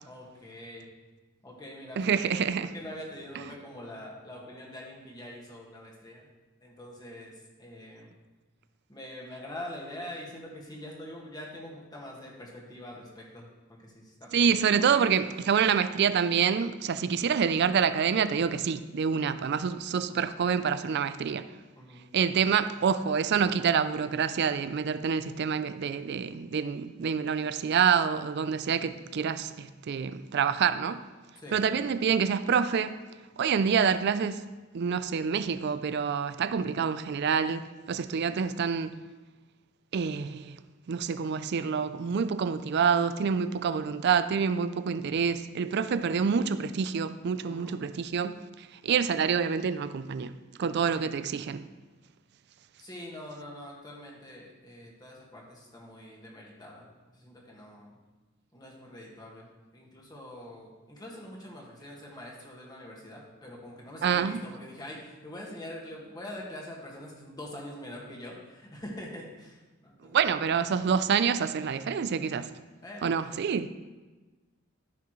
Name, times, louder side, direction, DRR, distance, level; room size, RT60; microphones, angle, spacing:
voice 1, 0.0-0.9 1.4-6.3 6.6-8.1 8.9-13.4 13.8-14.6 21.8-22.1 31.4-31.6 47.4-47.8 52.8-58.0 58.5-59.5 59.7-70.3 72.8-73.5, left 1 dB, 20° left, 1.8 m, -44 dB
voice 2, 2.0-2.7 14.3-21.5 22.1-31.0 31.5-33.0 33.4-34.4 34.7-38.9 39.9-40.6 40.9-50.3 50.6-51.7 64.0-64.4 70.1-72.5 73.0-73.7, right 6 dB, 55° right, 0.4 m, -27 dB
14.0 x 5.9 x 3.1 m
head